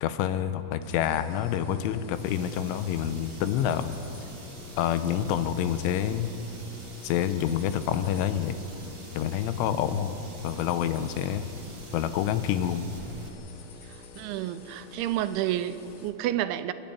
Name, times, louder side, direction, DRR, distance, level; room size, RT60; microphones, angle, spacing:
voice 1, 0.0-3.9 4.8-6.3 7.0-8.6 9.2-10.2 10.4-11.4 11.9-12.9, left 10 dB, 85° left, 10 dB, 3.3 m, -27 dB
sound 1, 0.8-16.1, left 5 dB, 65° left, 2.9 m, -47 dB
sound 2, 2.1-13.3, right 3 dB, 45° right, 1.6 m, -47 dB
voice 2, 14.2-16.7, right 13 dB, 85° right, 12 dB, 3.0 m, -30 dB
30.0 x 11.0 x 9.1 m, 2.9 s
omnidirectional pair, 5.4 m